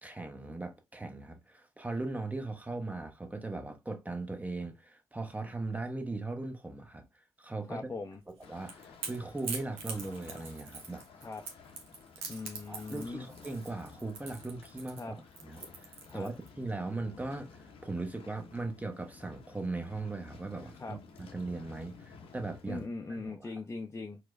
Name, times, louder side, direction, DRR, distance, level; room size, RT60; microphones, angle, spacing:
voice 1, 0.0-7.0 7.4-7.8 8.5-11.0 12.7-15.2 15.4-23.5, right 2 dB, 15° right, 0.8 m, -39 dB
voice 2, 7.7-8.2 11.2-11.4 12.3-13.3 15.0-15.2 16.1-16.3 20.8-21.0 22.7-24.2, left 3 dB, 25° left, 0.5 m, -40 dB
Crackle / Crack, 8.3-16.5, right 5 dB, 75° right, 0.7 m, -43 dB
sound 1, 8.4-22.9, left 5 dB, 70° left, 0.7 m, -54 dB
4.4 x 2.1 x 2.5 m
hypercardioid pair, 45°, 10 cm